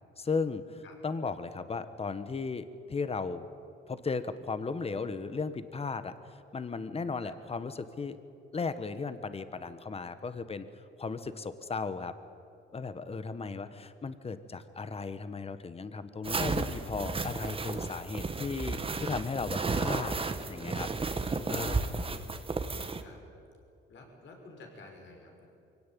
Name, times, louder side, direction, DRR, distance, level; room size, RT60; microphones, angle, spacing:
voice 1, 0.2-3.5 3.9-8.2 8.5-10.7 11.0-12.1 12.7-20.1 20.5-20.9 21.5-21.8, left 4 dB, 30° left, 12 dB, 1.4 m, -36 dB
sound 1, 16.2-23.0, right 3 dB, 25° right, 1.6 m, -33 dB
voice 2, 21.9-22.3 23.0-23.2 23.9-25.5, left 2 dB, 70° left, 2 dB, 5.7 m, -52 dB
23.5 x 17.5 x 9.3 m, 2.6 s
cardioid pair, 90°, 20 cm